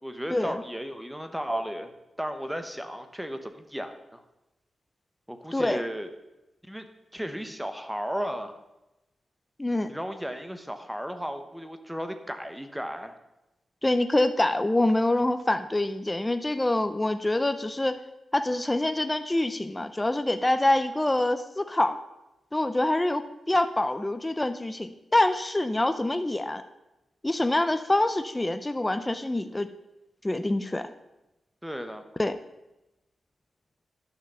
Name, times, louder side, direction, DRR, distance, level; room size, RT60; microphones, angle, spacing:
voice 1, 0.0-1.9 2.2-4.2 5.3-6.1 6.6-6.9 7.1-8.6 9.9-13.2 31.6-32.1, equal, 5° right, 7 dB, 0.9 m, -34 dB
voice 2, 5.5-5.8 9.6-9.9 13.8-18.0 18.3-22.0 22.5-26.6 27.2-29.7 30.2-30.9 32.2-32.4, left 1 dB, 10° left, 9 dB, 0.5 m, -25 dB
11.0 x 6.5 x 6.7 m, 0.97 s
wide cardioid pair, 150°, 0 cm